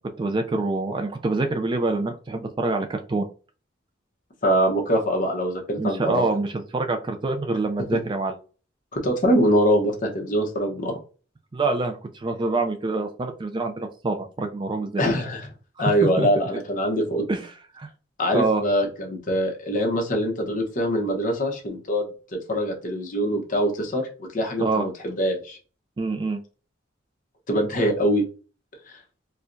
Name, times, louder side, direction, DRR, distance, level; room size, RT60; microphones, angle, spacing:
voice 1, 0.2-3.3 5.8-8.4 11.5-15.0 16.2-16.3 17.3-17.9 18.3-18.6 24.6-24.9 26.0-26.4, right 3 dB, 25° right, 6 dB, 0.4 m, -26 dB
voice 2, 4.4-6.2 7.9-8.0 8.9-11.0 15.0-15.5 15.8-17.2 18.2-22.1 22.5-25.6 27.5-28.2 28.9-29.0, equal, 45° left, 2 dB, 0.9 m, -23 dB
4.4 x 2.2 x 2.5 m, 0.35 s
head